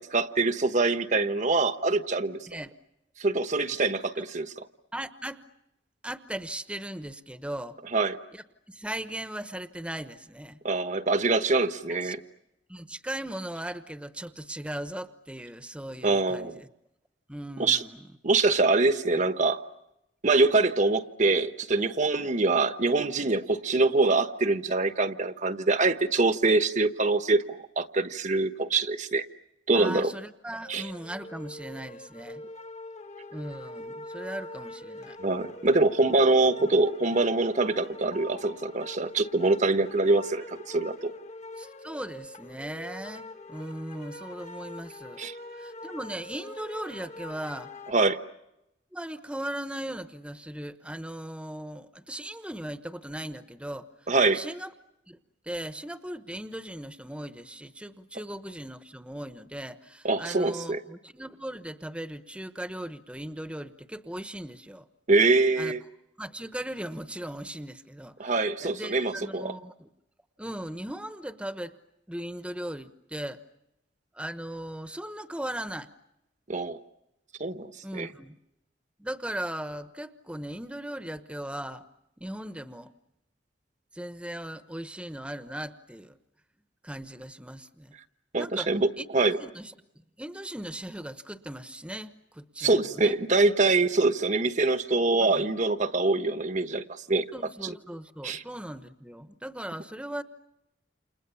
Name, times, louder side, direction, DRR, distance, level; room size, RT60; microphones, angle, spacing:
voice 1, 0.0-2.4 3.2-4.7 7.9-8.2 10.6-12.2 16.0-16.6 17.6-17.8 18.2-19.6 20.2-29.3 29.7-30.1 30.7-30.8 35.2-41.1 45.2-45.3 47.9-48.2 54.1-54.4 60.0-60.8 65.1-65.8 68.2-69.5 76.5-76.8 77.4-78.1 88.3-89.4 92.6-97.2 98.2-98.4, right 3 dB, 45° right, 10 dB, 1.2 m, -24 dB
voice 2, 4.9-5.4 6.0-7.8 8.3-10.6 11.9-12.1 12.7-16.7 17.3-18.2 29.7-32.4 33.3-35.2 41.6-45.2 45.6-47.7 48.9-54.7 55.1-55.2 55.4-64.9 65.6-65.7 66.2-69.9 70.4-71.7 72.1-73.4 74.1-75.9 77.8-78.4 79.0-81.8 82.2-82.9 83.9-86.2 86.8-87.9 88.4-88.7 89.0-93.2 95.2-95.5 97.3-100.2, right 1 dB, 5° right, 10 dB, 1.1 m, -38 dB
sound 1, 30.6-47.9, left 1 dB, 40° left, 1.5 m, -43 dB
30.0 x 28.5 x 7.0 m, 0.87 s
head